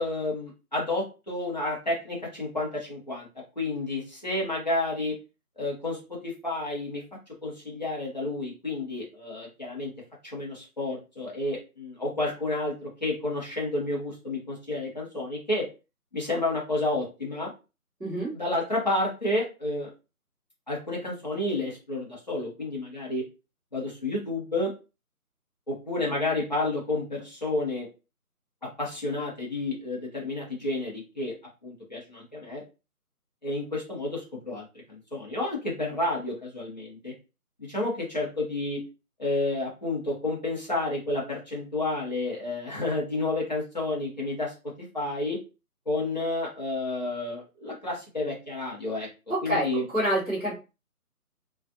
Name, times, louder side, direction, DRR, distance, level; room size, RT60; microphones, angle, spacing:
voice 1, 0.0-3.3 3.6-5.2 5.6-7.0 7.4-9.9 10.2-15.7 16.1-17.5 18.3-19.9 20.7-23.3 23.7-24.7 25.7-27.9 28.8-31.3 31.6-32.6 33.4-37.1 37.6-38.8 39.2-45.4 45.9-49.1 49.4-49.8, left 2 dB, 30° left, -4 dB, 0.7 m, -30 dB
voice 2, 18.0-18.3 49.3-50.5, equal, 5° right, -20 dB, 1.0 m, -27 dB
2.4 x 2.4 x 2.5 m, 0.30 s
figure-of-eight pair, 160°, 46 cm